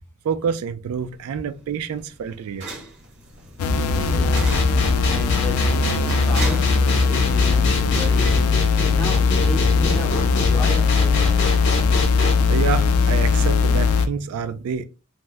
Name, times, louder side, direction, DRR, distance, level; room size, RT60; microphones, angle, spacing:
voice 1, 0.2-2.7 12.5-14.9, right 6 dB, 75° right, 0.3 m, -27 dB
sound 1, 1.0-9.4, right 2 dB, 50° right, 1.0 m, -39 dB
sound 2, 3.6-14.1, left 4 dB, 70° left, 0.4 m, -19 dB
voice 2, 3.7-4.6 5.1-8.3 8.9-11.4, left 1 dB, 10° left, 0.5 m, -33 dB
sound 3, 4.3-12.3, left 3 dB, 55° left, 0.8 m, -26 dB
2.7 x 2.1 x 3.3 m
head